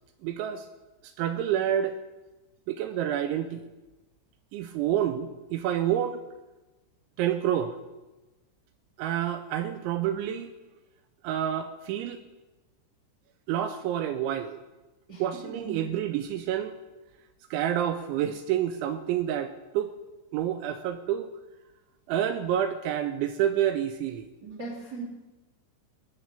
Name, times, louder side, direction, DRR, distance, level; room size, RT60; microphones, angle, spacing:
voice 1, 0.2-0.7 1.0-2.0 2.7-3.6 4.5-6.2 7.2-7.8 9.0-10.5 11.2-12.2 13.5-14.6 15.2-16.8 17.5-19.9 20.3-21.3 22.1-24.3, right 10 dB, 80° right, 9 dB, 2.8 m, -28 dB
voice 2, 15.1-15.9 24.4-25.0, right 4 dB, 30° right, -5 dB, 2.3 m, -39 dB
19.5 x 7.0 x 6.9 m, 1.1 s
omnidirectional pair, 5.7 m